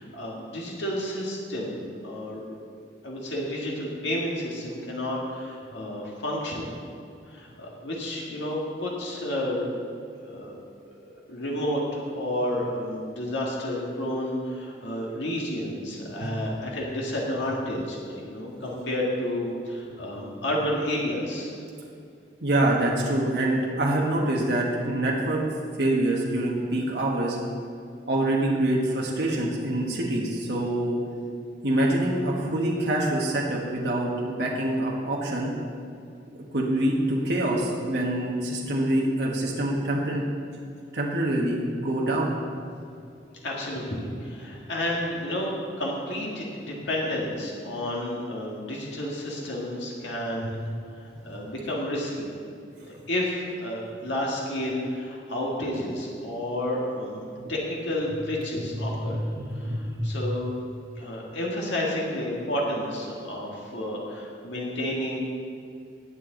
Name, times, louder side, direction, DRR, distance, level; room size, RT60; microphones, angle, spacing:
voice 1, 0.0-2.6 3.0-6.7 7.3-9.7 10.2-10.6 11.0-21.5 43.4-50.6 51.0-52.3 52.9-59.2 59.5-60.6 61.0-65.2, left 1 dB, 90° left, -3 dB, 1.8 m, -31 dB
voice 2, 22.4-25.4 25.8-27.4 28.1-31.0 31.6-35.5 36.5-40.2 40.9-42.3 50.4-50.5 59.1-60.1, right 1 dB, 70° right, -3 dB, 1.5 m, -25 dB
18.5 x 7.0 x 3.9 m, 2.5 s
head